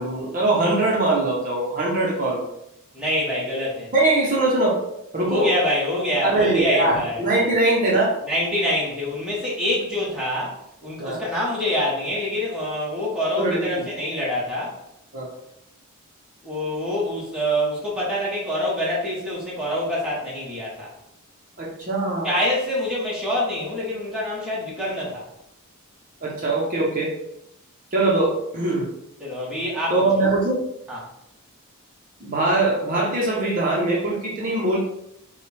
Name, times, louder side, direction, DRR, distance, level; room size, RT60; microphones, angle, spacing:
voice 1, 0.0-2.4 3.9-4.8 5.1-5.5 6.2-8.1 11.0-11.2 13.4-13.9 15.1-15.3 21.6-22.3 26.2-27.1 27.9-28.9 29.9-30.6 32.2-34.8, right 2 dB, 35° right, -4 dB, 0.8 m, -22 dB
voice 2, 2.9-3.9 5.2-7.2 8.2-14.8 16.4-20.9 22.2-25.3 29.2-30.2 30.9-31.0, left 1 dB, 5° right, -7 dB, 1.1 m, -25 dB
5.7 x 2.4 x 3.3 m, 0.80 s
head